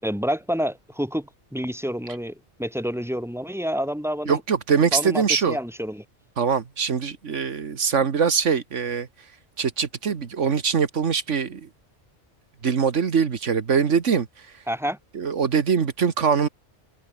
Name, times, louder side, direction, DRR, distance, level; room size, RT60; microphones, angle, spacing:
voice 1, 0.0-4.4 4.9-6.0 14.7-15.0, equal, ahead, 5.1 m, -28 dB
voice 2, 4.3-5.6 6.4-9.1 9.6-11.6 12.6-14.3 15.1-16.5, right 6 dB, 80° right, 1.8 m, -22 dB
omnidirectional pair, 1.2 m